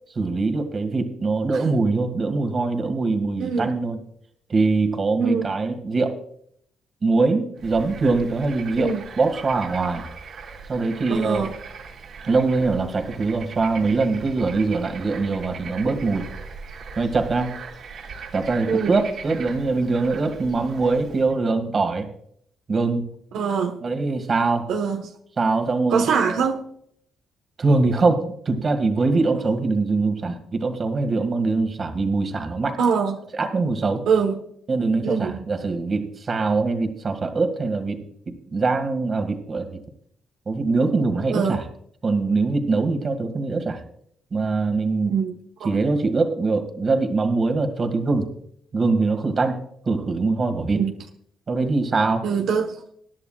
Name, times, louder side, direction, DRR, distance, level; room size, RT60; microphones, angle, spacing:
voice 1, 0.2-4.0 4.5-6.2 7.0-10.1 10.7-11.5 12.2-16.3 17.0-17.5 18.3-22.1 22.7-23.0 23.8-24.7 25.4-26.4 27.6-32.8 33.4-34.0 34.7-39.8 40.4-41.6 42.0-43.8 44.3-45.1 45.6-48.3 48.7-49.6 49.8-50.8 51.5-52.2, right 3 dB, 40° right, 1.8 m, -23 dB
voice 2, 5.2-5.5 8.8-9.0 11.1-11.6 18.7-19.0 23.3-23.8 24.7-25.1 25.9-26.6 32.8-33.2 34.1-34.4 35.0-35.4 41.3-41.6 42.8-42.9 45.0-45.3 45.6-45.8 50.7-50.9 52.2-52.8, right 6 dB, 80° right, 1.1 m, -23 dB
Bird / Frog, 7.6-21.3, right 5 dB, 65° right, 2.8 m, -39 dB
21.5 x 10.5 x 2.3 m
cardioid pair, 90°, 0 cm